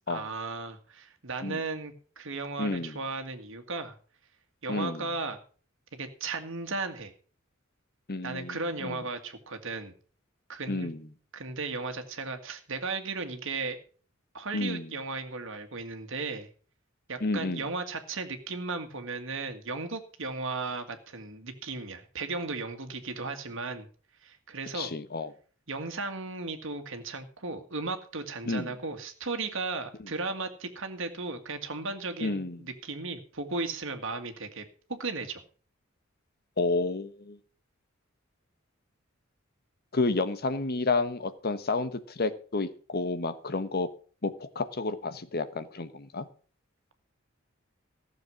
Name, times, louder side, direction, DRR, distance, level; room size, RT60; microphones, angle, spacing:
voice 1, 0.1-4.0 4.6-5.4 6.0-7.1 8.2-9.9 10.5-10.9 11.3-13.8 14.3-16.5 17.1-23.9 24.2-24.9 25.7-35.4, right 3 dB, 70° right, 7 dB, 1.9 m, -35 dB
voice 2, 2.6-3.0 4.7-5.1 8.1-9.0 10.7-11.1 14.5-14.9 17.2-17.6 24.7-25.3 28.5-28.7 32.2-32.6 36.6-37.4 39.9-43.9 44.2-46.3, left 3 dB, 50° left, 12 dB, 1.1 m, -30 dB
14.5 x 7.2 x 6.3 m, 0.41 s
head